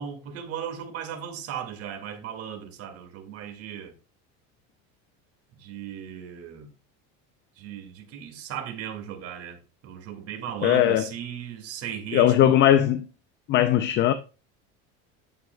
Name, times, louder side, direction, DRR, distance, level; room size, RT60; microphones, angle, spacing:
voice 1, 0.0-3.9 5.6-6.7 7.6-12.6, right 8 dB, 50° right, 2.0 m, -36 dB
voice 2, 10.6-11.1 12.1-13.0 13.5-14.1, left 11 dB, 35° left, 0.5 m, -19 dB
9.6 x 8.5 x 2.2 m
cardioid pair, 155°, 31 cm